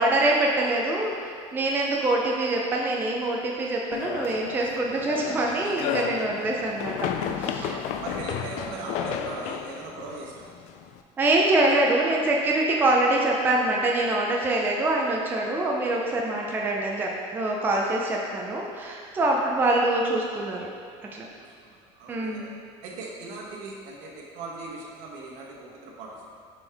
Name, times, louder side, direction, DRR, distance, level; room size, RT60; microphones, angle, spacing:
voice 1, 0.0-7.1 7.4-7.8 11.2-20.7 21.1-21.3 22.1-22.5, right 2 dB, 15° right, -2 dB, 0.5 m, -24 dB
sound 1, 3.9-11.0, left 8 dB, 65° left, 0.4 m, -33 dB
voice 2, 7.5-10.5 19.2-19.3 21.4-22.5 22.8-26.4, right 3 dB, 75° right, -2 dB, 1.1 m, -39 dB
7.1 x 4.4 x 3.4 m, 2.1 s
cardioid pair, 165°, 13 cm